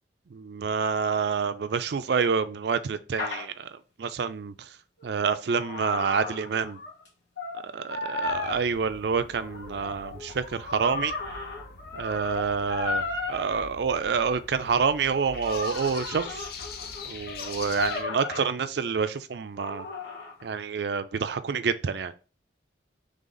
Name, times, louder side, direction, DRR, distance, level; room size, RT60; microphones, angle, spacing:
voice 1, 0.3-4.7 5.0-6.8 7.6-11.1 11.9-16.4 17.1-19.8 20.4-22.1, right 5 dB, 65° right, 0.4 m, -28 dB
sound 1, 3.2-3.4 5.0-7.1 7.4-7.6 7.9-8.6 9.3-13.4 14.2-14.4 15.4-18.5 19.6-20.5, left 3 dB, 75° left, 1.4 m, -35 dB
sound 2, 8.2-18.0, left 5 dB, 55° left, 0.5 m, -43 dB
3.8 x 3.3 x 3.9 m
head